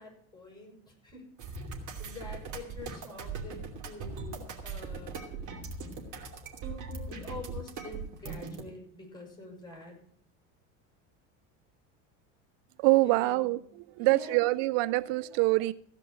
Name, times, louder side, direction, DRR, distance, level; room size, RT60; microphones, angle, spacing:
voice 1, 0.0-1.7 2.0-5.8 7.1-9.9 13.0-13.6 14.0-14.5, left 2 dB, 10° left, 6.7 m, -46 dB
sound 1, 1.4-8.6, right 4 dB, 50° right, 2.8 m, -40 dB
voice 2, 12.8-13.6 14.0-15.7, right 21 dB, 70° right, 0.5 m, -25 dB
16.0 x 5.3 x 8.6 m
supercardioid pair, 90°, 39 cm